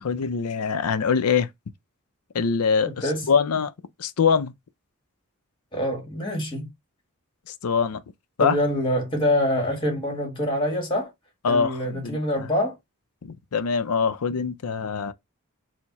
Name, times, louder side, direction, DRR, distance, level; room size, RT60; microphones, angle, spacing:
voice 1, 0.0-1.5 2.3-3.7 4.0-4.5 7.5-8.0 8.4-8.6 11.4-12.5 13.2-15.1, left 6 dB, 90° left, 0.5 m, -24 dB
voice 2, 5.7-6.7 8.4-11.1 11.5-12.8, left 1 dB, 20° left, 1.5 m, -25 dB
4.5 x 2.1 x 4.0 m
head